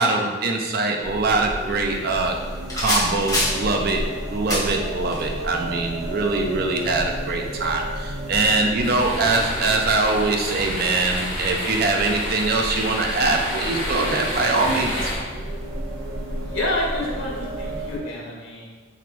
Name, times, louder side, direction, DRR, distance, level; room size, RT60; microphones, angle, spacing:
voice 1, 0.0-2.4 2.7-15.1, right 3 dB, 50° right, 2 dB, 0.4 m, -23 dB
sound 1, 1.0-18.0, right 1 dB, 85° right, 0.7 m, -32 dB
sound 2, 1.9-8.3, left 1 dB, 15° left, 0.7 m, -31 dB
sound 3, 8.8-15.2, left 1 dB, 60° left, 1.3 m, -30 dB
voice 2, 16.4-18.6, left 1 dB, 85° left, -4 dB, 1.1 m, -28 dB
3.0 x 2.6 x 4.0 m, 1.4 s
head